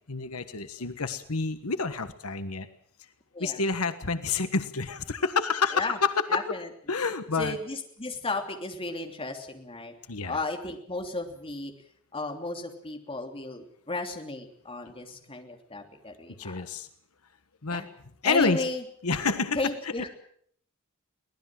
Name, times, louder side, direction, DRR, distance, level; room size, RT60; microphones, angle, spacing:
voice 1, 0.1-2.7 3.4-6.3 6.9-7.5 10.1-10.4 16.4-16.9 17.6-17.8 18.2-18.6 19.0-19.6, left 4 dB, 85° left, 10 dB, 1.4 m, -28 dB
voice 2, 6.3-6.7 7.3-9.9 10.2-11.7 12.1-16.6 17.7-17.9 18.2-18.8 19.6-20.1, left 2 dB, 25° left, 4 dB, 3.1 m, -34 dB
24.0 x 18.5 x 7.7 m, 0.64 s
head